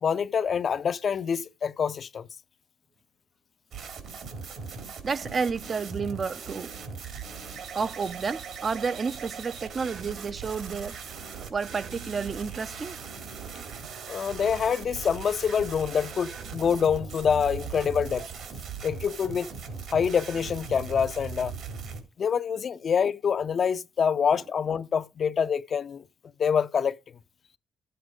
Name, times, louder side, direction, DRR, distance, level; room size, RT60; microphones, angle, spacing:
voice 1, 0.0-2.3 14.1-18.3 18.8-19.5 19.9-21.5 22.2-26.0 26.4-27.0, left 7 dB, 50° left, 0.5 m, -26 dB
sound 1, 3.7-22.0, right 5 dB, 70° right, 3.5 m, -39 dB
voice 2, 5.0-6.7 7.7-11.0 11.5-13.0, right 5 dB, 40° right, 0.6 m, -31 dB
12.5 x 7.9 x 5.0 m
cardioid pair, 90°, 0 cm